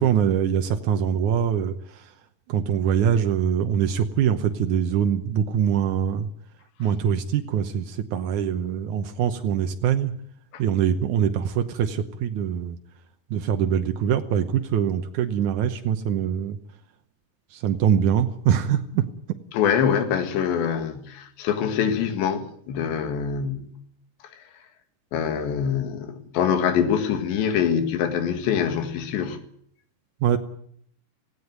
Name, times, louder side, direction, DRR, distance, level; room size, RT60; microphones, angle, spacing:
voice 1, 0.0-2.0 2.5-6.3 6.8-10.1 10.6-12.8 13.3-16.6 17.5-19.0 30.2-30.4, right 8 dB, 80° right, 1.8 m, -23 dB
voice 2, 19.5-23.7 25.1-29.4, left 8 dB, 90° left, 4.1 m, -24 dB
18.0 x 17.0 x 9.3 m
omnidirectional pair, 4.9 m